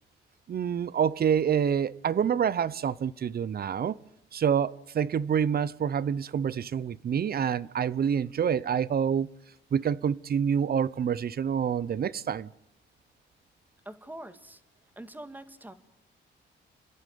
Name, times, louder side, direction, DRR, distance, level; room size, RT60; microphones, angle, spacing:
voice 1, 0.5-4.0 4.3-9.3 9.7-12.5, right 8 dB, 50° right, 0.7 m, -27 dB
voice 2, 13.9-14.6 15.0-15.7, right 1 dB, 10° right, 2.0 m, -44 dB
30.0 x 11.5 x 9.3 m
cardioid pair, 90°, 20 cm